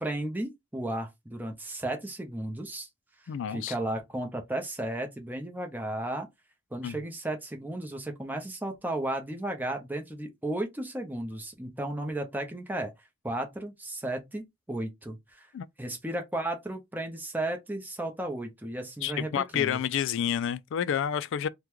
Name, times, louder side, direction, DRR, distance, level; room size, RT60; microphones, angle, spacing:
voice 1, 0.0-2.9 3.5-6.3 6.7-12.9 13.2-15.5 15.8-19.8, right 1 dB, 10° right, 0.7 m, -34 dB
voice 2, 3.3-3.7 6.8-7.0 15.5-15.7 19.0-21.5, left 9 dB, 60° left, 0.3 m, -29 dB
3.6 x 2.2 x 3.0 m
head